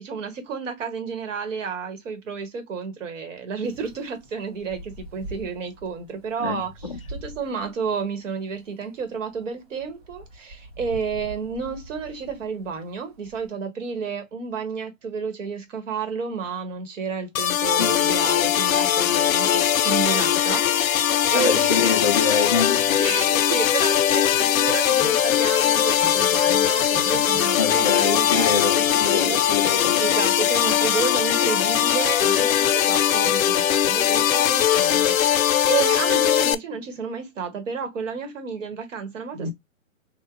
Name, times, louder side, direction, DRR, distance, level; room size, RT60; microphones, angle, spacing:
voice 1, 0.0-21.9 23.0-29.4 30.0-39.5, right 5 dB, 65° right, 1.6 m, -31 dB
Wind, 3.6-13.5, right 1 dB, 50° right, 1.1 m, -44 dB
voice 2, 6.4-7.0 17.8-17.9 21.3-23.0 27.6-30.0, left 5 dB, 25° left, 0.4 m, -26 dB
sound 1, 17.4-36.6, left 11 dB, 80° left, 0.6 m, -20 dB
sound 2, 24.3-25.2 26.0-27.5 28.5-30.0 31.4-32.5, equal, 10° left, 1.0 m, -43 dB
3.6 x 2.5 x 3.7 m
hypercardioid pair, 160°, 41 cm